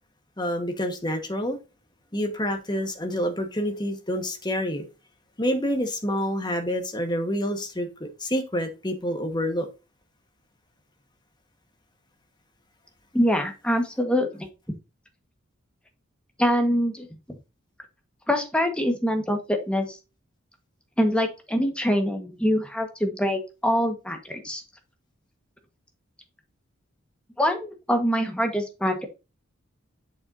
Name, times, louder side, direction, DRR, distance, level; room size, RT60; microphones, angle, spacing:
voice 1, 0.4-1.6 2.1-4.8 5.4-7.9 8.2-9.7, equal, 20° left, 1.5 m, -27 dB
voice 2, 13.1-14.5 16.4-17.4 18.3-20.0 21.0-24.6 27.4-29.1, equal, 5° left, 1.5 m, -24 dB
8.0 x 6.5 x 2.7 m
head